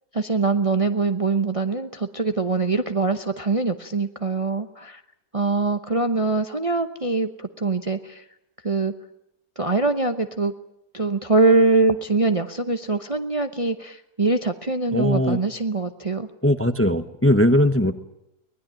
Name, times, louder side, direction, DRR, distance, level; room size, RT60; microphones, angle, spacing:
voice 1, 0.1-5.0 5.3-8.2 8.6-8.9 9.6-10.5 10.9-16.3, right 3 dB, 25° right, 8 dB, 0.8 m, -23 dB
voice 2, 14.9-15.4 16.4-17.9, left 1 dB, 10° left, 9 dB, 0.9 m, -19 dB
24.0 x 20.0 x 9.0 m, 0.84 s
omnidirectional pair, 1.6 m